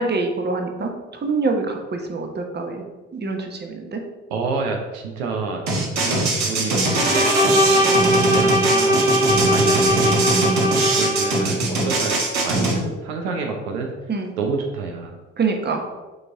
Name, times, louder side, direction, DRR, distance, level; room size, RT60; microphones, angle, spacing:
voice 1, 0.0-2.8 3.1-4.0 7.8-8.0 14.1-14.3 15.4-15.8, right 3 dB, 30° right, 3 dB, 1.2 m, -25 dB
voice 2, 4.3-5.6 6.0-7.8 8.3-9.0 9.5-12.2 12.4-13.9 14.4-15.2, right 4 dB, 80° right, 2 dB, 0.8 m, -28 dB
sound 1, 5.7-12.8, right 2 dB, 55° right, 1.6 m, -21 dB
Bowed string instrument, 6.8-11.5, equal, 10° right, 1.0 m, -20 dB
6.5 x 4.1 x 3.7 m, 1.2 s
hypercardioid pair, 60°, 32 cm